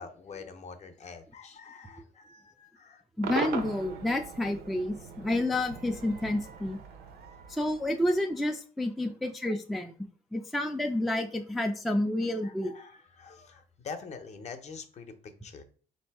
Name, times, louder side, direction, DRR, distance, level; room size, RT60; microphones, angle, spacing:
voice 1, 0.0-3.0 12.4-15.6, left 5 dB, 40° left, 8 dB, 0.6 m, -45 dB
voice 2, 3.2-6.8 7.5-9.9 10.3-12.7, left 1 dB, ahead, 3 dB, 0.3 m, -29 dB
Cheering / Crowd / Fireworks, 3.2-8.5, right 5 dB, 70° right, 0.7 m, -40 dB
3.3 x 2.6 x 4.5 m, 0.42 s
cardioid pair, 110°, 17 cm